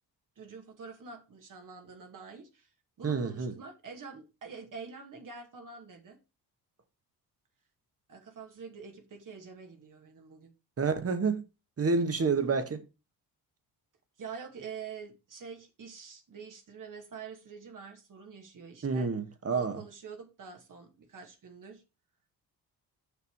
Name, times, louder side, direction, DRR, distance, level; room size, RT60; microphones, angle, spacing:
voice 1, 0.4-2.7 3.0-6.2 8.1-10.5 14.2-19.1 19.5-21.8, right 5 dB, 50° right, 2.3 m, -46 dB
voice 2, 3.0-3.5 10.8-11.4 11.8-12.8 18.8-19.8, right 4 dB, 35° right, 1.8 m, -29 dB
6.9 x 6.0 x 4.7 m
cardioid pair, 85°, 39 cm